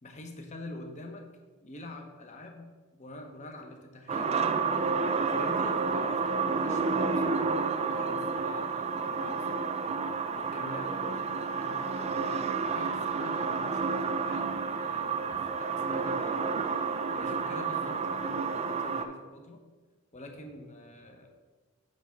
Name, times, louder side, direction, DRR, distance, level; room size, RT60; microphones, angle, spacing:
voice 1, 0.0-1.3 1.6-4.9 5.3-7.5 7.8-9.7 10.3-14.5 14.8-16.6 17.1-19.6 20.1-21.3, left 1 dB, 35° left, 3 dB, 0.9 m, -45 dB
sound 1, 4.1-19.0, right 4 dB, 30° right, 0.4 m, -30 dB
7.8 x 3.4 x 6.4 m, 1.3 s
head